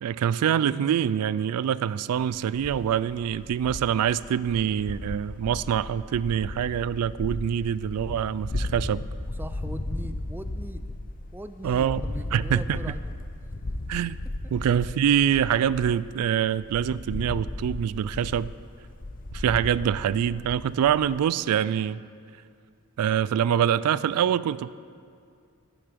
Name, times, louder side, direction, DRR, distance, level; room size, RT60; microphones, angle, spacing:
voice 1, 0.0-9.0 11.6-12.0 12.3-12.8 13.9-14.2 14.5-18.5 19.3-22.0 23.0-24.7, right 9 dB, 90° right, 17 dB, 0.3 m, -25 dB
sound 1, 2.1-16.3 16.6-21.2, left 2 dB, 40° left, 0.6 m, -36 dB
voice 2, 9.3-10.9 11.3-13.0, right 1 dB, 10° right, 9 dB, 0.3 m, -40 dB
11.0 x 10.0 x 5.1 m, 2.3 s
head